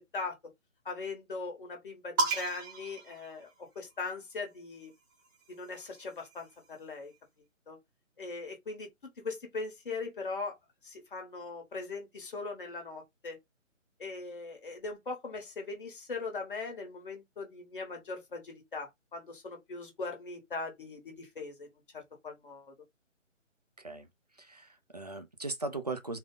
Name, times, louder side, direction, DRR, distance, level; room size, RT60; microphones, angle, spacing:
voice 1, 0.8-4.9 5.5-7.1 7.7-7.8 8.2-10.6 10.8-13.4 14.0-22.7, left 3 dB, 40° left, 1.4 m, -40 dB
sound 1, 2.2-4.0 5.1-6.7, right 3 dB, 15° right, 0.9 m, -36 dB
voice 2, 23.8-24.1 24.4-26.2, right 2 dB, 35° right, 0.4 m, -38 dB
3.9 x 2.2 x 3.7 m
figure-of-eight pair, 145°, 39 cm